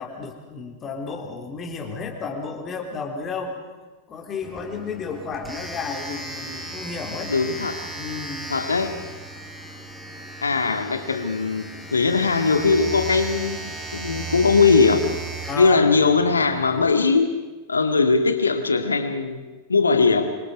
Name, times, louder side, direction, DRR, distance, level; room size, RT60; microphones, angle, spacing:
voice 1, 0.0-3.6 4.1-7.3 7.9-8.5 15.5-15.9, left 5 dB, 25° left, 2 dB, 3.9 m, -32 dB
Domestic sounds home sounds, 4.4-16.9, right 3 dB, 5° right, 4.7 m, -35 dB
voice 2, 7.3-7.9 8.5-9.0 10.4-15.1 15.6-17.4 17.7-19.4 19.7-20.4, left 4 dB, 75° left, 8 dB, 2.0 m, -20 dB
26.5 x 25.5 x 5.2 m, 1.3 s
figure-of-eight pair, 90°, 0 cm